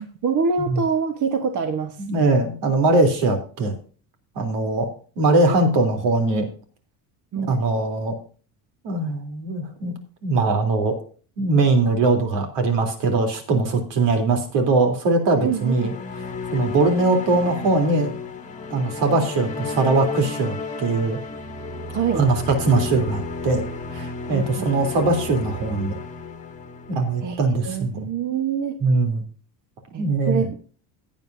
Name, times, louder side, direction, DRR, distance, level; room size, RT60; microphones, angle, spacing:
voice 1, 0.0-2.0 7.3-7.6 15.4-15.9 21.9-22.3 24.3-24.7 27.2-28.8 29.9-30.6, right 6 dB, 45° right, 6 dB, 1.2 m, -25 dB
voice 2, 2.0-3.8 4.4-4.9 5.2-6.5 7.4-8.1 8.8-9.9 10.2-11.0 11.4-15.9 16.5-18.1 18.7-21.2 22.1-23.6 23.9-26.0 26.9-28.1 28.8-29.2 30.0-30.4, right 3 dB, 75° right, 5 dB, 3.5 m, -21 dB
sound 1, 15.3-27.8, left 4 dB, 15° left, 1.4 m, -33 dB
16.5 x 9.4 x 2.7 m, 0.40 s
cardioid pair, 150°, 42 cm